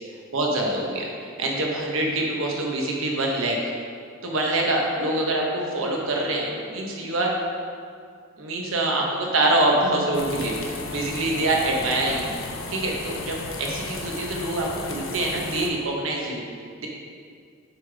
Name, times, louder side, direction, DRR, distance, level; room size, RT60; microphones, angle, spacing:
voice 1, 0.3-3.6 4.2-7.4 8.4-16.4 16.8-16.9, right 2 dB, 75° right, -1 dB, 1.1 m, -25 dB
sound 1, 10.1-15.7, left 3 dB, 70° left, 0.7 m, -35 dB
7.3 x 5.2 x 3.4 m, 2.2 s
head